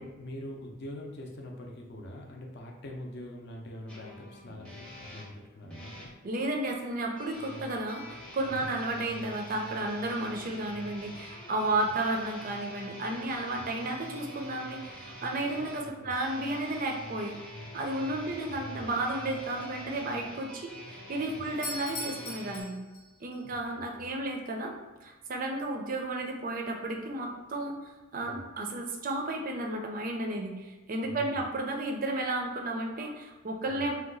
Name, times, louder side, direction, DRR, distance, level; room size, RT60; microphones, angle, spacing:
voice 1, 0.0-6.1 8.5-8.7 13.5-13.7 15.6-15.7 16.0-16.1 18.0-18.9 21.3-21.4 23.4-24.1 28.2-28.4 31.0-31.4 33.6-33.9, left 1 dB, 50° left, 0 dB, 0.5 m, -44 dB
sound 1, 3.9-6.1 7.2-22.6, equal, 5° left, 0.6 m, -45 dB
voice 2, 6.2-17.3 17.7-22.7 23.2-24.7 25.0-33.9, right 2 dB, 40° right, 1 dB, 0.4 m, -33 dB
Doorbell, 21.5-23.4, left 2 dB, 80° left, 0.8 m, -40 dB
2.8 x 2.2 x 3.9 m, 1.2 s
head